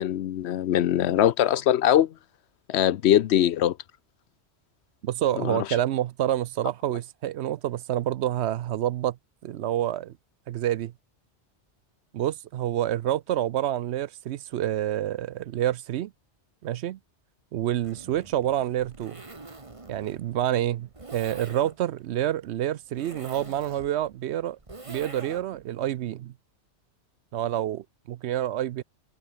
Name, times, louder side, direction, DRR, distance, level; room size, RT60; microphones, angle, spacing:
voice 1, 0.0-2.1 2.7-3.8 5.4-5.7, left 11 dB, 70° left, 0.9 m, -22 dB
voice 2, 5.0-9.2 9.4-10.1 10.5-10.9 12.1-16.1 16.6-17.0 17.5-19.2 19.9-24.6 24.9-26.3 27.3-28.8, right 12 dB, 70° right, 0.8 m, -28 dB
Zipper (clothing), 17.7-25.7, right 2 dB, 25° right, 1.8 m, -45 dB
omnidirectional pair, 1.2 m